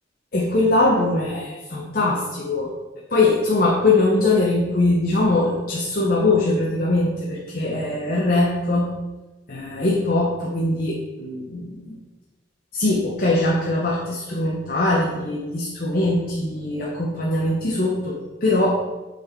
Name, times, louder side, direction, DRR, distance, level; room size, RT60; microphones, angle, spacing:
voice 1, 0.3-2.7 3.1-8.9 9.5-12.0 12.7-18.7, left 2 dB, 45° left, -4 dB, 0.9 m, -21 dB
7.3 x 4.1 x 4.5 m, 1.1 s
head